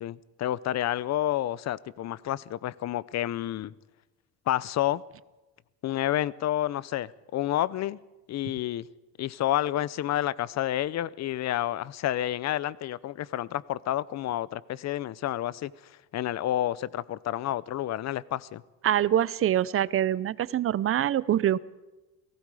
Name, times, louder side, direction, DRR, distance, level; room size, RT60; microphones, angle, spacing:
voice 1, 0.0-3.7 4.5-5.0 5.8-8.0 8.3-8.9 9.2-15.7 16.1-18.6, left 13 dB, 50° left, 20 dB, 0.7 m, -29 dB
voice 2, 18.8-21.6, right 11 dB, 40° right, 19 dB, 0.7 m, -24 dB
29.0 x 18.5 x 4.9 m, 1.1 s
cardioid pair, 110°, 35 cm